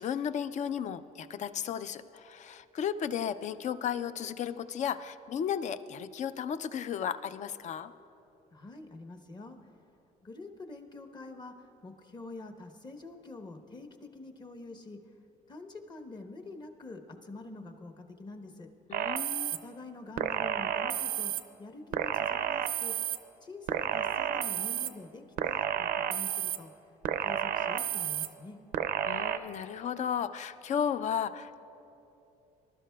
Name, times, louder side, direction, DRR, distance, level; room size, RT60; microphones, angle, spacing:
voice 1, 0.0-7.9 18.9-19.5 29.1-31.6, left 8 dB, 50° left, 13 dB, 0.4 m, -34 dB
voice 2, 8.5-9.7 10.2-15.0 15.5-18.7 19.5-21.3 21.6-22.9 23.4-26.7 27.2-28.6, left 2 dB, 25° left, 5 dB, 0.9 m, -46 dB
sound 1, 18.9-19.6 20.2-21.4 21.9-23.2 23.7-24.9 25.4-26.6 27.0-28.3 28.7-29.4, right 10 dB, 70° right, 0.5 m, -31 dB
19.5 x 12.0 x 2.3 m, 2.9 s
cardioid pair, 105°, 16 cm